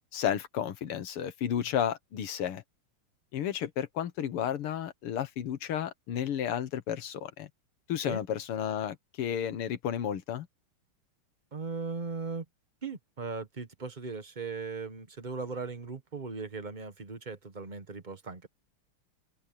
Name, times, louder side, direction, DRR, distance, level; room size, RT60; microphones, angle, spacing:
voice 1, 0.1-2.6 3.3-7.5 7.9-10.5, left 9 dB, 85° left, 2.2 m, -32 dB
voice 2, 11.5-12.4 12.8-18.5, right 4 dB, 25° right, 1.2 m, -38 dB
omnidirectional pair, 2.4 m